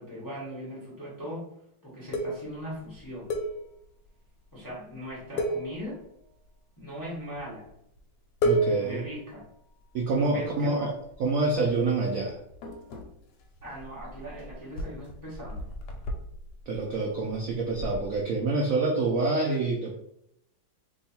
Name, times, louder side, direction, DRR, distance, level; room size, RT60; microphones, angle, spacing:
voice 1, 0.0-1.5 1.8-3.3 4.5-6.0 6.8-7.7 8.6-9.4 10.3-10.9 13.6-15.7, equal, 20° left, -6 dB, 0.5 m, -39 dB
sound 1, 2.1-4.1 4.4-4.6 4.9-5.1 5.4-6.5 7.2-7.7 8.0-8.1 8.4-10.4 11.0-11.7 11.9-18.2, right 1 dB, 70° left, 1.1 m, -33 dB
voice 2, 8.4-9.0 9.9-10.9 11.2-12.4 16.7-19.9, right 3 dB, 85° right, 0 dB, 0.7 m, -27 dB
2.9 x 2.3 x 4.1 m, 0.76 s
omnidirectional pair, 2.1 m